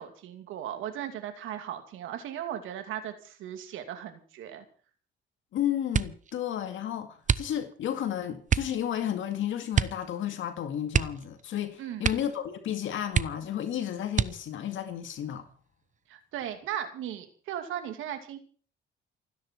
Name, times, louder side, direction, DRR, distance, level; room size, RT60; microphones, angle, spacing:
voice 1, 0.0-4.6 11.8-12.1 16.1-18.4, right 10 dB, 90° right, 2.6 m, -37 dB
voice 2, 5.5-15.5, left 10 dB, 75° left, 2.2 m, -32 dB
sound 1, 5.9-6.3 7.2-7.9 8.5-8.8 9.7-10.1 10.3-10.4 10.9-11.6 12.0-12.4 12.7-12.8 13.1-13.6 14.1-14.7 15.4-16.0 16.4-16.8, right 7 dB, 40° right, 0.9 m, -28 dB
29.5 x 10.0 x 4.6 m
cardioid pair, 90°, 20 cm